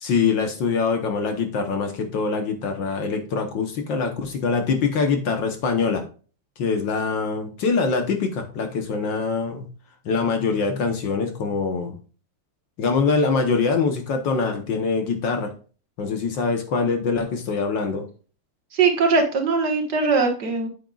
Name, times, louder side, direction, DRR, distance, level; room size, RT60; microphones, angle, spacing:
voice 1, 0.0-6.0 6.6-9.7 10.0-12.0 12.8-15.5 16.0-18.1, left 4 dB, 60° left, 5 dB, 1.6 m, -24 dB
voice 2, 18.7-20.7, right 4 dB, 50° right, 2 dB, 1.9 m, -20 dB
9.0 x 7.8 x 2.4 m, 0.38 s
omnidirectional pair, 2.4 m